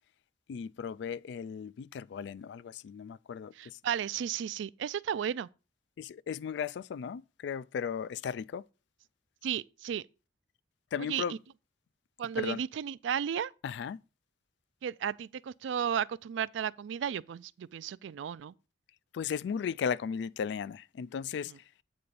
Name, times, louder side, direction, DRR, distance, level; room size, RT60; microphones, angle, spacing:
voice 1, 0.5-3.8 6.0-8.6 10.9-11.4 12.4-12.6 13.6-14.0 19.1-21.5, left 7 dB, 65° left, 0.3 m, -36 dB
voice 2, 3.6-5.5 9.4-10.0 11.1-11.4 12.2-13.5 14.8-18.5, right 8 dB, 75° right, 0.3 m, -34 dB
8.7 x 3.9 x 6.8 m
head